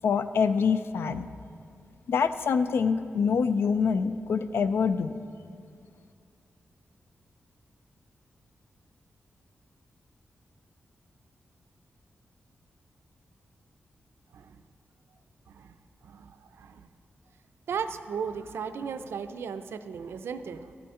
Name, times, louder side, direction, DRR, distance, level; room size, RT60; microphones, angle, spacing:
voice 1, 0.0-1.3 2.1-5.2, left 6 dB, 75° left, 12 dB, 0.4 m, -25 dB
voice 2, 16.0-16.8 17.7-20.7, right 6 dB, 85° right, 10 dB, 0.4 m, -36 dB
13.5 x 6.9 x 3.6 m, 2.4 s
wide cardioid pair, 135°, 4 cm